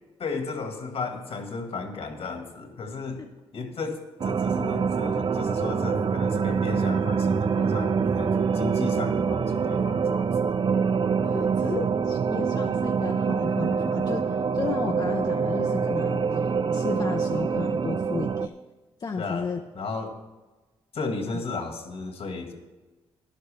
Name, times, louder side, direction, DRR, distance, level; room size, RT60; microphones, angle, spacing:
voice 1, 0.2-3.2 3.5-10.3 14.6-15.1 19.2-20.1 20.9-22.5, left 3 dB, 65° left, 5 dB, 1.8 m, -34 dB
sound 1, 4.2-18.5, right 6 dB, 45° right, 0.5 m, -25 dB
voice 2, 11.2-18.5 19.0-19.6 21.3-21.4, left 4 dB, 40° left, 4 dB, 0.7 m, -33 dB
12.5 x 11.0 x 3.4 m, 1.2 s
cardioid pair, 75°, 11 cm